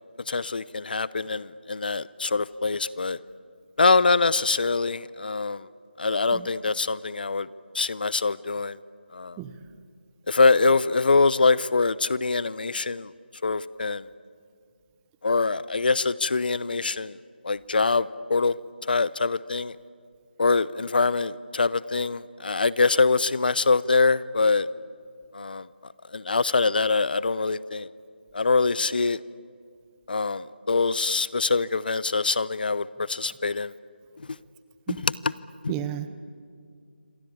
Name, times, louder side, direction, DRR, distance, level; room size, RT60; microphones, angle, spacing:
voice 1, 0.3-3.2 3.8-5.7 6.0-7.5 7.7-8.8 9.1-9.4 10.3-13.1 13.4-14.0 15.2-17.2 17.4-18.6 18.8-19.7 20.4-24.7 25.3-25.7 26.1-27.9 28.3-29.2 30.1-33.7 35.0-35.1 35.6-35.7, left 4 dB, 55° left, 19 dB, 0.8 m, -24 dB
voice 2, 35.7-36.1, right 11 dB, 10° right, 12 dB, 0.8 m, -33 dB
27.0 x 25.0 x 8.7 m, 2.2 s
figure-of-eight pair, 160°, 6 cm